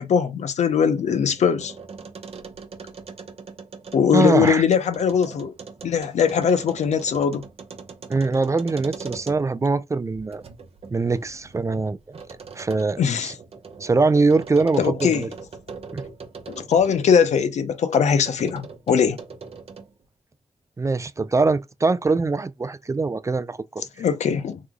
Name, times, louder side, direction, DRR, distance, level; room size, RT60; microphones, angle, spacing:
voice 1, 0.0-1.7 3.9-5.5 5.8-7.4 13.0-13.3 14.8-15.3 16.5-19.2 24.0-24.6, left 7 dB, 80° left, 0.6 m, -21 dB
sound 1, 0.7-9.7 10.1-17.4 17.9-20.0, right 5 dB, 55° right, 0.8 m, -41 dB
voice 2, 4.1-4.6 8.1-10.4 10.9-12.2 12.5-13.3 13.8-15.3 15.9-16.0 20.8-23.8, right 3 dB, 25° right, 0.4 m, -22 dB
3.1 x 2.2 x 3.6 m
cardioid pair, 75°, 12 cm